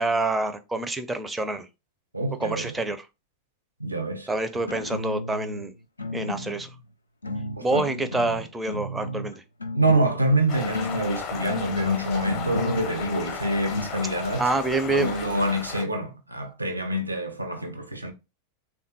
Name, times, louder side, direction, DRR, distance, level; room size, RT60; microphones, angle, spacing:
voice 1, 0.0-1.7 2.4-3.1 4.3-5.7 6.1-6.7 7.6-9.4 14.4-15.1, right 2 dB, 10° right, 0.4 m, -27 dB
voice 2, 2.1-2.7 3.8-4.3 7.6-7.8 9.7-14.4 14.9-18.1, right 1 dB, 80° right, 0.5 m, -26 dB
sound 1, 4.5-5.6 6.0-6.8 7.2-10.2 10.5-13.9, left 2 dB, 80° left, 0.3 m, -33 dB
sound 2, 10.5-15.8, left 5 dB, 40° left, 0.6 m, -35 dB
3.4 x 2.2 x 2.7 m
figure-of-eight pair, 90°, 0 cm